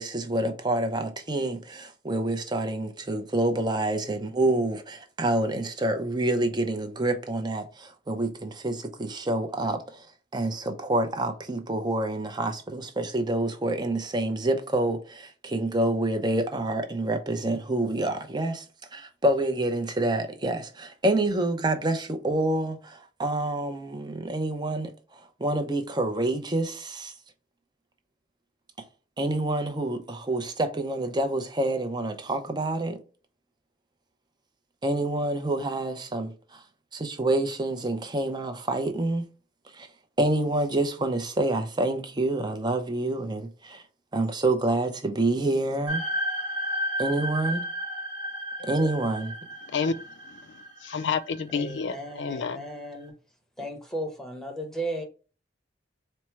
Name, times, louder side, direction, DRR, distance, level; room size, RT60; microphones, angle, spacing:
voice 1, 0.0-10.1 10.3-18.7 18.9-27.1 29.2-33.0 34.8-36.6 36.9-39.2 39.7-39.9 40.2-43.8 44.1-46.0 47.0-47.6 48.6-49.3, right 2 dB, 25° right, 0.6 m, -27 dB
sound 1, 45.9-52.1, equal, 85° right, 1.1 m, -33 dB
voice 2, 49.6-52.7, left 5 dB, 70° left, 0.4 m, -31 dB
voice 3, 51.5-53.2 53.6-55.1, right 1 dB, 5° left, 0.8 m, -35 dB
4.3 x 2.1 x 4.5 m
head